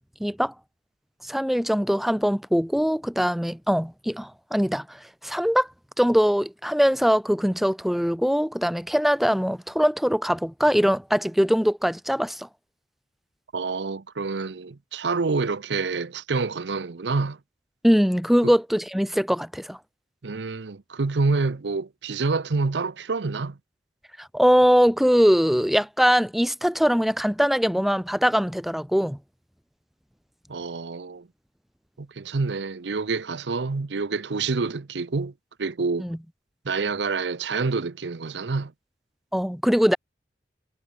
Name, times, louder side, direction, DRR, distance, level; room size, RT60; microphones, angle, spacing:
voice 1, 0.2-0.5 1.2-4.8 5.2-5.7 6.0-12.5 17.8-19.8 24.2-29.2 36.0-36.2 39.3-40.0, equal, ahead, 0.6 m, -22 dB
voice 2, 13.5-17.4 18.4-18.5 20.2-23.6 30.5-31.3 32.0-35.3 35.6-36.1 36.6-38.7, right 4 dB, 75° right, 0.7 m, -27 dB
head